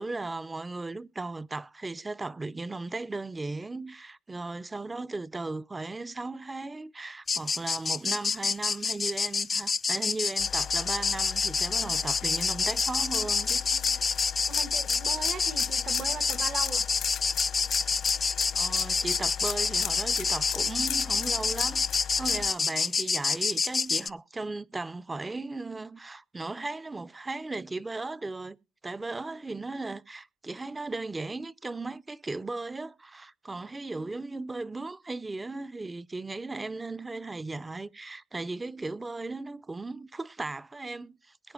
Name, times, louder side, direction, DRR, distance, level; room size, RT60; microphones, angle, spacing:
voice 1, 0.0-13.7 13.9-14.2 18.5-21.9 22.2-28.6 28.8-41.5, right 3 dB, 20° right, 0.6 m, -37 dB
sound 1, 7.3-24.1, left 4 dB, 35° left, 0.5 m, -28 dB
sound 2, 10.4-22.5, left 10 dB, 75° left, 1.1 m, -38 dB
voice 2, 14.5-16.9, right 6 dB, 60° right, 1.4 m, -39 dB
22.0 x 8.7 x 2.4 m
cardioid pair, 90°, 0 cm